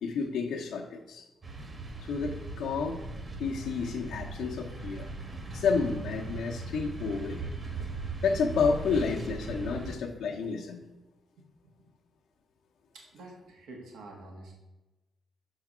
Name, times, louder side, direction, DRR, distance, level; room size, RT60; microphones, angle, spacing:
voice 1, 0.0-1.3 2.0-3.0 3.4-5.1 5.5-7.4 8.2-10.8, left 5 dB, 80° left, 0 dB, 0.8 m, -30 dB
sound 1, 1.4-10.0, right 3 dB, 30° right, 1.1 m, -39 dB
voice 2, 11.4-11.9 12.9-14.5, right 2 dB, 90° right, 0 dB, 1.4 m, -49 dB
5.8 x 4.7 x 6.0 m, 1.0 s
cardioid pair, 115°, 0 cm